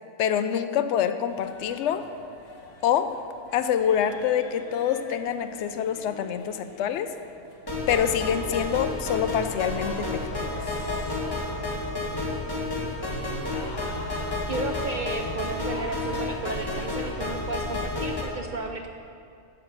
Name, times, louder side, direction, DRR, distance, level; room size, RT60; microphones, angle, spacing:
voice 1, 0.2-2.0 2.8-3.2 3.5-7.1 7.9-10.5, left 9 dB, 65° left, 10 dB, 0.8 m, -26 dB
sound 1, 1.3-16.6, left 3 dB, 90° left, 1.5 m, -44 dB
sound 2, 7.7-18.2, left 2 dB, 15° left, 1.4 m, -31 dB
voice 2, 14.5-18.9, right 3 dB, 70° right, 4 dB, 0.4 m, -33 dB
8.6 x 5.9 x 8.0 m, 2.4 s
omnidirectional pair, 1.4 m